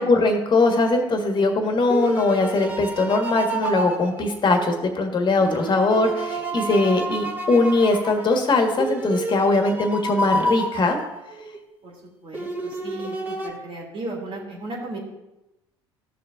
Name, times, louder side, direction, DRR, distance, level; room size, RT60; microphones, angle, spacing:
voice 1, 0.0-11.0, left 2 dB, 35° left, 4 dB, 1.7 m, -21 dB
sound 1, 1.3-4.9 5.4-11.6 12.3-13.5, right 1 dB, 15° right, 2.1 m, -30 dB
voice 2, 6.6-7.3 11.8-11.9 12.2-15.0, right 2 dB, 40° right, -1 dB, 2.7 m, -35 dB
14.0 x 6.6 x 2.6 m, 0.95 s
hypercardioid pair, 65°, 14 cm